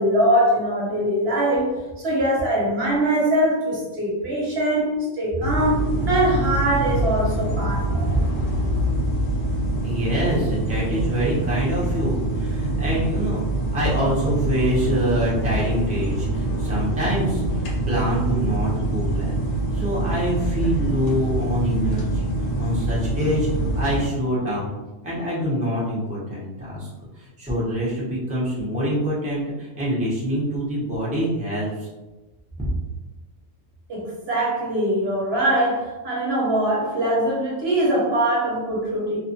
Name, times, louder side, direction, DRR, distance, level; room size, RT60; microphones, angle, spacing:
voice 1, 0.0-8.1 33.9-39.2, right 1 dB, 60° right, -5 dB, 0.9 m, -22 dB
sound 1, 5.4-24.1, right 2 dB, 75° left, 1.0 m, -25 dB
voice 2, 9.8-13.4 13.7-19.4 19.7-22.3 22.6-23.5 23.7-24.7 25.0-26.9 27.2-31.9 32.6-32.7, equal, 10° right, -7 dB, 0.5 m, -25 dB
2.5 x 2.4 x 2.6 m, 1.1 s
omnidirectional pair, 1.3 m